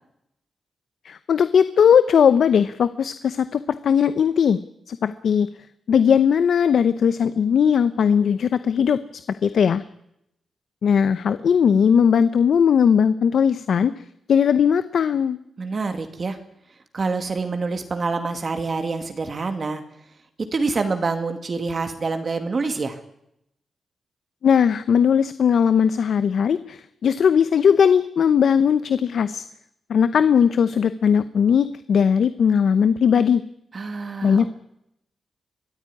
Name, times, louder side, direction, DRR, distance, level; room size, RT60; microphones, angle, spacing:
voice 1, 1.0-4.6 4.9-5.5 5.9-9.0 9.4-9.8 10.8-13.9 14.3-15.4 24.4-29.4 29.9-33.4 34.2-34.5, left 7 dB, 75° left, 13 dB, 0.8 m, -18 dB
voice 2, 15.6-16.4 16.9-19.8 20.5-23.0 33.7-34.5, right 4 dB, 45° right, 7 dB, 2.3 m, -26 dB
23.0 x 14.5 x 9.9 m, 0.79 s
cardioid pair, 95°, 0 cm